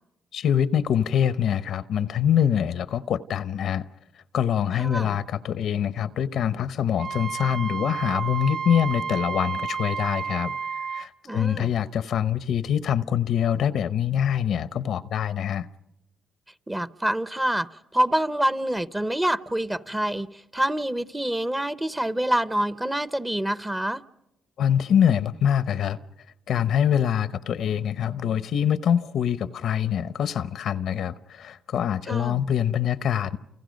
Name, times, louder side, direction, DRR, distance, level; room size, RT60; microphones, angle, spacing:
voice 1, 0.3-3.8 4.3-10.6 10.9-15.7 24.6-26.0 26.5-33.4, left 9 dB, 70° left, 0.8 m, -24 dB
voice 2, 4.8-5.2 11.2-11.7 16.7-20.3 20.5-24.0 32.1-32.4, right 1 dB, 10° right, 0.8 m, -26 dB
Wind instrument woodwind instrument, 7.0-11.1, right 6 dB, 80° right, 0.8 m, -31 dB
30.0 x 29.5 x 5.2 m
cardioid pair, 90°, 0 cm